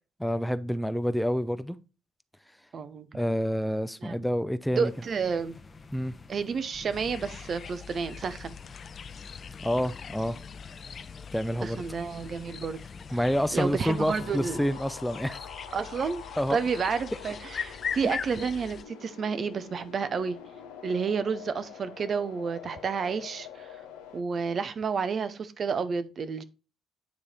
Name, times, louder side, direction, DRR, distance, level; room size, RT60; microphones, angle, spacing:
voice 1, 0.2-1.8 3.1-4.9 5.9-6.1 9.6-10.4 11.3-11.8 13.1-15.5 16.4-16.6 18.0-18.1, equal, 5° left, 0.6 m, -28 dB
voice 2, 2.7-3.1 4.0-4.2 4.7-5.6 6.3-8.5 11.6-12.8 13.5-14.7 15.7-16.2 16.5-20.4 20.8-23.8 24.1-26.4, right 5 dB, 50° right, 0.7 m, -30 dB
sound 1, 4.9-14.6, left 4 dB, 35° left, 0.9 m, -48 dB
sound 2, 6.9-18.8, left 7 dB, 50° left, 0.5 m, -41 dB
sound 3, 13.4-24.2, left 7 dB, 90° left, 0.9 m, -46 dB
9.5 x 3.2 x 4.2 m
supercardioid pair, 60°, 0 cm